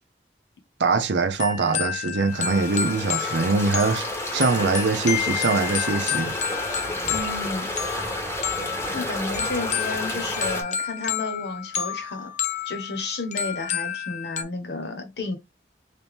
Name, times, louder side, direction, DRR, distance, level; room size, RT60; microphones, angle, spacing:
voice 1, 0.8-4.1 4.3-6.3 6.6-6.8, right 4 dB, 80° right, 0.6 m, -23 dB
sound 1, 1.4-14.4, left 8 dB, 45° left, 0.6 m, -30 dB
sound 2, 2.3-10.6, left 1 dB, 15° left, 0.8 m, -31 dB
voice 2, 7.1-7.7 8.9-12.3 12.6-15.4, left 3 dB, 70° left, 1.1 m, -32 dB
3.4 x 2.8 x 3.5 m
head